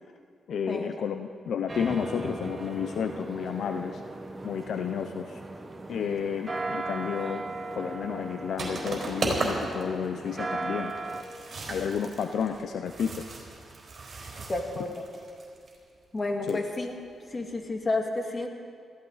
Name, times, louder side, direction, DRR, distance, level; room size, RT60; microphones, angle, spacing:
voice 1, 0.5-4.0 4.4-5.4 5.9-7.4 7.8-10.9 11.7-13.3 16.5-16.6, left 7 dB, 75° left, 7 dB, 0.6 m, -31 dB
sound 1, 1.7-11.2, right 2 dB, 25° right, 1.3 m, -37 dB
sound 2, 8.6-9.8 10.1-10.2 10.4-10.5 10.9-15.7 16.5-16.8, right 3 dB, 50° right, 4.2 m, -35 dB
voice 2, 14.5-15.0 16.1-17.0 17.3-18.5, left 2 dB, 30° left, 3 dB, 2.0 m, -30 dB
19.5 x 14.5 x 4.1 m, 2.3 s
cardioid pair, 75°, 0 cm